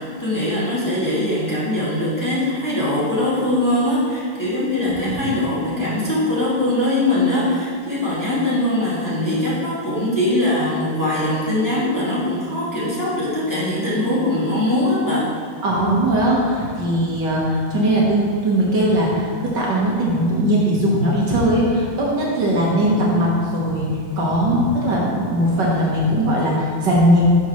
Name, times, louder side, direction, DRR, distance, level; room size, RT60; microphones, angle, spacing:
voice 1, 0.0-15.2, left 1 dB, 10° left, -10 dB, 2.1 m, -21 dB
voice 2, 4.8-5.2 15.6-23.9 24.2-27.2, right 1 dB, 60° right, -5 dB, 1.9 m, -19 dB
11.5 x 6.2 x 3.1 m, 2.4 s
omnidirectional pair, 2.3 m